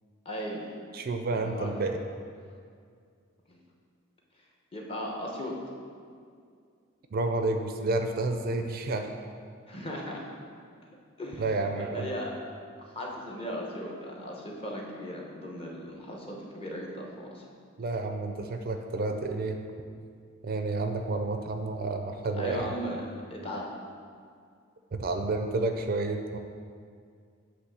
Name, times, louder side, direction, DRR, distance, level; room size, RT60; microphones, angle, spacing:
voice 1, 0.2-0.6 1.4-1.7 3.5-3.6 4.7-5.5 9.7-10.3 11.2-12.3 12.9-17.4 22.3-23.7, equal, 30° left, -1 dB, 1.0 m, -37 dB
voice 2, 0.9-2.0 7.1-9.1 11.4-12.1 17.8-19.6 20.4-22.7 24.9-26.4, right 2 dB, 45° right, 5 dB, 0.4 m, -30 dB
8.2 x 3.1 x 6.2 m, 2.2 s
head